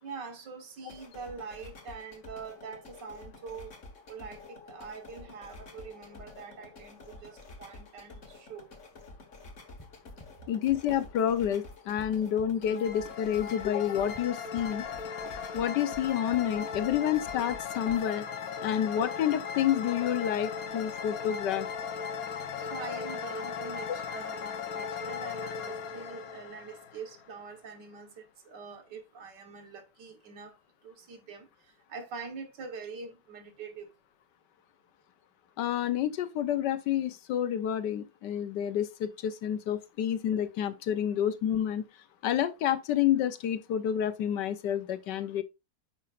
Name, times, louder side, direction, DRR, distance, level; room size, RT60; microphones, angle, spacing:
voice 1, 0.0-3.8 4.1-8.7 10.4-10.5 22.3-30.6 30.8-33.9, right 5 dB, 85° right, 2.0 m, -44 dB
sound 1, 0.8-18.1, left 3 dB, 45° left, 1.8 m, -50 dB
sound 2, 9.8-11.5 11.7-18.5, left 1 dB, 15° left, 0.9 m, -53 dB
voice 2, 10.5-14.8 15.5-18.2 18.6-21.7 35.6-41.8 42.2-45.4, left 10 dB, 85° left, 1.5 m, -29 dB
sound 3, 12.6-27.4, left 6 dB, 60° left, 1.3 m, -37 dB
9.7 x 6.3 x 2.5 m
omnidirectional pair, 1.8 m